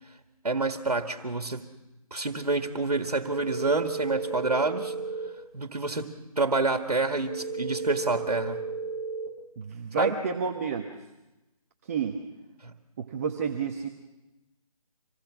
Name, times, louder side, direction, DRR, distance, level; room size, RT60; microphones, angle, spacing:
voice 1, 0.4-1.7 2.1-4.9 5.5-8.6 10.0-10.2 12.6-12.7, right 3 dB, 85° right, 6 dB, 1.9 m, -28 dB
sound 1, 3.3-5.3 7.3-9.3, right 3 dB, ahead, 7.0 m, -34 dB
voice 2, 9.6-10.9 11.9-12.2 13.0-13.9, right 6 dB, 25° right, 1 dB, 1.2 m, -30 dB
26.5 x 19.5 x 6.2 m, 0.99 s
figure-of-eight pair, 155°, 19 cm